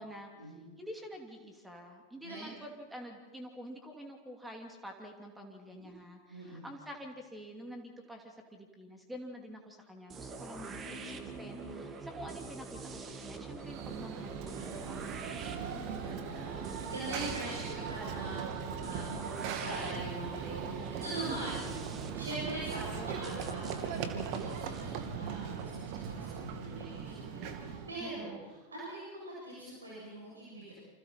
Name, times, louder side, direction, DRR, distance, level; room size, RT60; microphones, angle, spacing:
voice 1, 0.0-15.4 20.8-21.4 28.0-28.5, equal, 5° right, 3 dB, 2.9 m, -47 dB
voice 2, 6.3-6.7 10.7-11.8 15.4-21.8 22.1-28.3 28.7-30.7, right 2 dB, 75° right, -6 dB, 7.8 m, -43 dB
sound 1, 10.1-25.9, right 4 dB, 25° right, 2.1 m, -45 dB
Run / Train, 13.6-28.0, right 7 dB, 45° right, 2.2 m, -40 dB
29.0 x 26.0 x 4.5 m, 1.3 s
figure-of-eight pair, 90°, 0 cm